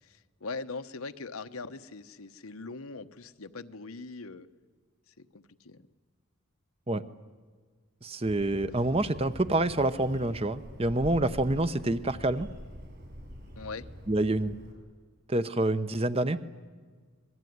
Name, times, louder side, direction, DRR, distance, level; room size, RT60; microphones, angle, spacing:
voice 1, 0.0-4.5 5.1-5.9 13.6-13.9, left 3 dB, 85° left, 9 dB, 1.1 m, -41 dB
voice 2, 8.0-12.5 14.1-14.6 15.3-16.4, right 2 dB, 25° right, 12 dB, 0.8 m, -27 dB
Bird, 8.2-14.7, equal, 50° right, 7.4 m, -45 dB
26.5 x 21.0 x 9.5 m, 1.6 s
head